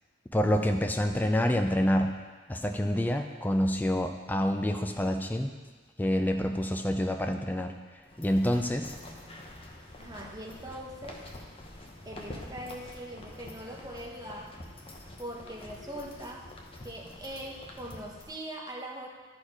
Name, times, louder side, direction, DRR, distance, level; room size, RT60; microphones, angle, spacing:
voice 1, 0.3-2.1 2.5-5.5 6.0-7.7 8.2-9.0, equal, 10° left, 5 dB, 0.4 m, -27 dB
sound 1, 8.0-18.3, left 1 dB, 25° left, 0.8 m, -47 dB
voice 2, 10.0-11.2 12.0-14.6 15.2-16.5 16.8-19.1, right 1 dB, 20° right, -1 dB, 1.0 m, -41 dB
11.5 x 4.3 x 4.8 m, 1.4 s
head